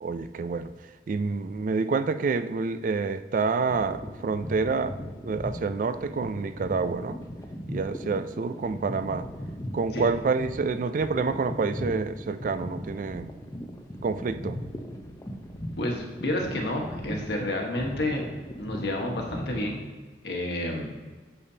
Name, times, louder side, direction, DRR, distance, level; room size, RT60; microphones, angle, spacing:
voice 1, 0.0-0.7 1.1-5.0 5.2-7.2 7.7-9.3 9.7-13.3 14.0-14.6, right 4 dB, 45° right, 12 dB, 0.3 m, -28 dB
sound 1, 3.6-19.7, equal, 20° left, 0.7 m, -38 dB
voice 2, 15.8-18.2 18.6-19.9 20.2-20.9, left 1 dB, 70° left, 0 dB, 1.3 m, -30 dB
8.3 x 6.8 x 2.8 m, 1.4 s
head